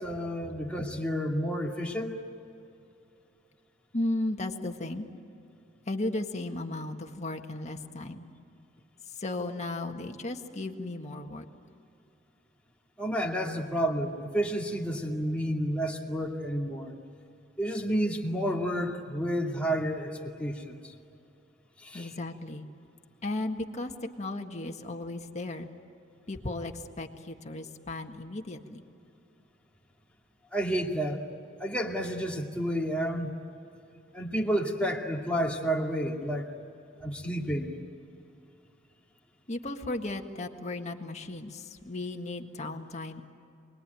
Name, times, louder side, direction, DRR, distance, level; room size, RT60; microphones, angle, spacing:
voice 1, 0.0-2.2 13.0-16.9 17.6-20.9 21.8-22.1 30.5-31.2 31.6-33.3 34.1-36.5 37.0-37.8, equal, 5° left, -1 dB, 2.4 m, -30 dB
voice 2, 3.9-5.1 5.9-8.3 9.2-11.5 21.9-22.7 23.2-23.9 24.2-25.7 26.3-28.8 39.5-43.2, left 2 dB, 35° left, 3 dB, 1.7 m, -35 dB
28.5 x 21.5 x 9.3 m, 2.7 s
head